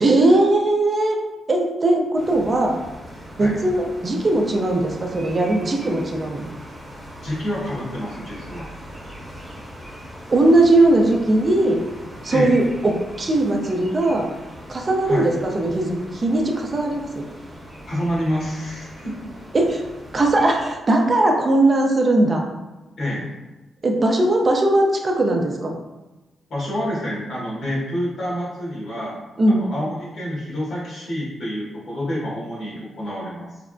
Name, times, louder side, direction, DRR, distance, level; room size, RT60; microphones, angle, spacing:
voice 1, 0.0-1.2 1.5-2.7 3.4-6.5 10.3-11.8 12.2-14.3 14.7-17.2 19.5-19.8 20.1-22.4 23.8-25.7 29.4-29.6, right 2 dB, 40° right, 1 dB, 0.5 m, -19 dB
sound 1, 2.1-20.7, equal, 10° right, 0.9 m, -40 dB
voice 2, 7.2-8.7 12.3-12.6 15.0-15.3 17.9-19.2 23.0-23.3 26.5-29.2 29.5-33.5, equal, 70° left, -7 dB, 1.4 m, -28 dB
3.3 x 2.0 x 2.5 m, 1.1 s
supercardioid pair, 60°, 0 cm